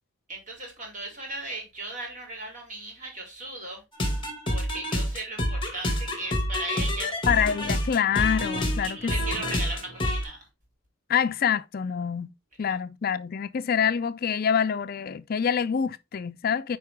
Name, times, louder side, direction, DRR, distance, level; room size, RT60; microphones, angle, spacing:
voice 1, 0.3-3.8 4.5-7.1 8.8-10.5 12.6-12.8, right 2 dB, 40° right, 3.7 m, -37 dB
sound 1, 3.9-10.2, left 1 dB, 25° left, 2.1 m, -28 dB
voice 2, 7.3-9.2 11.1-12.3 12.6-16.8, left 7 dB, 45° left, 0.4 m, -26 dB
9.3 x 4.6 x 3.5 m
head